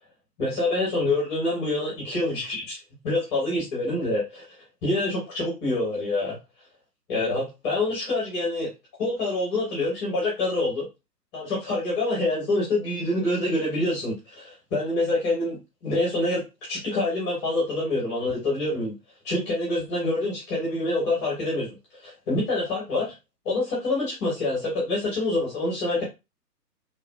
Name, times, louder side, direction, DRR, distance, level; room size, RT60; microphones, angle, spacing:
voice 1, 0.4-2.8 3.0-4.5 4.8-6.4 7.1-8.7 9.0-10.8 11.3-18.9 19.2-23.1 23.4-26.0, left 2 dB, 20° left, -4 dB, 1.0 m, -26 dB
3.0 x 2.5 x 2.2 m, 0.24 s
figure-of-eight pair, 130°, 49 cm